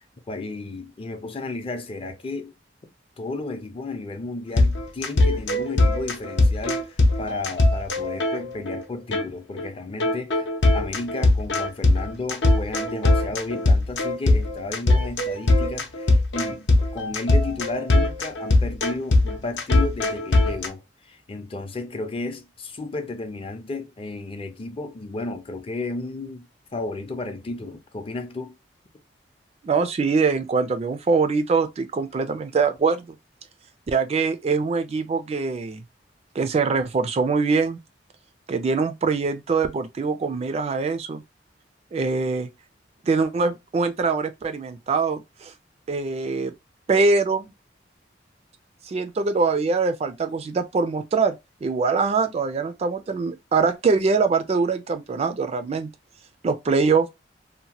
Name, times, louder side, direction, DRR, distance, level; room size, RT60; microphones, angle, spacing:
voice 1, 0.3-2.5 3.2-10.5 10.7-26.5 26.7-28.6, left 2 dB, 30° left, 0.5 m, -33 dB
sound 1, 4.6-8.8 9.1-9.2 9.6-9.7 10.0-20.7, left 2 dB, 70° left, 0.6 m, -20 dB
voice 2, 29.6-33.1 33.9-35.8 36.4-37.8 38.5-41.2 41.9-42.5 43.0-45.5 45.9-46.5 46.9-47.5 48.9-51.4 51.6-55.9 56.4-57.1, right 4 dB, 35° right, 0.3 m, -23 dB
2.8 x 2.1 x 2.8 m
head